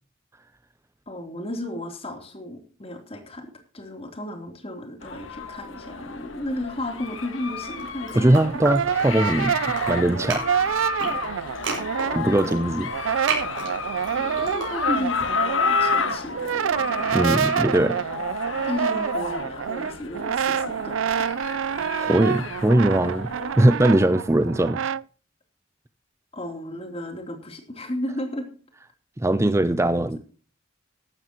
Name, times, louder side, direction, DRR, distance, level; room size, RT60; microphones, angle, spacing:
voice 1, 1.1-8.6 12.0-12.3 14.1-17.2 18.6-21.2 26.3-28.5, left 1 dB, 30° left, 4 dB, 3.1 m, -34 dB
sound 1, 5.0-24.1, left 5 dB, 80° left, 1.7 m, -32 dB
slurpy sounds, 7.7-9.3 9.6-15.2, right 3 dB, 75° right, 6.2 m, -33 dB
voice 2, 8.1-9.6 9.9-10.5 12.1-12.9 17.1-18.0 22.0-23.3 23.6-24.8 29.2-30.2, right 1 dB, 15° right, 12 dB, 0.5 m, -20 dB
Brass instrument, 8.2-12.6 12.9-25.0, right 7 dB, 90° right, 0.4 m, -27 dB
14.5 x 12.0 x 2.9 m, 0.41 s
head